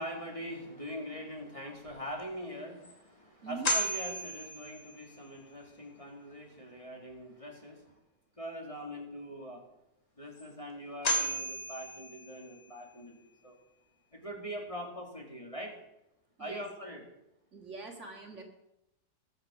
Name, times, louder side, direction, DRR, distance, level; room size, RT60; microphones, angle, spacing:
voice 1, 0.0-8.0 8.4-9.6 10.2-13.5 14.1-15.8 16.4-17.0, equal, 20° left, 0 dB, 2.4 m, -42 dB
sound 1, 2.2-2.3 2.8-2.9 3.6-5.3 10.4-10.5 11.0-12.7, equal, 45° left, 3.4 m, -34 dB
voice 2, 17.5-18.4, right 4 dB, 45° right, 2 dB, 2.4 m, -43 dB
21.5 x 8.1 x 6.2 m, 0.88 s
omnidirectional pair, 1.8 m